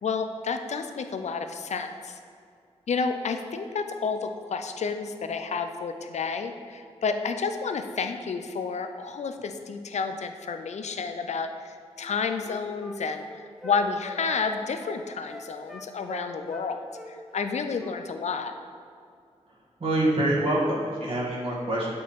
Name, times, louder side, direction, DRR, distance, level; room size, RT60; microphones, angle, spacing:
voice 1, 0.0-2.2 2.9-13.2 13.6-18.5, left 5 dB, 70° left, 7 dB, 0.5 m, -30 dB
Wind instrument woodwind instrument, 12.0-16.7 16.9-18.0 18.2-18.4, equal, ahead, 0.8 m, -42 dB
voice 2, 19.8-21.9, right 1 dB, 50° right, -7 dB, 1.7 m, -25 dB
7.4 x 4.5 x 3.6 m, 2.2 s
cardioid pair, 55°, 12 cm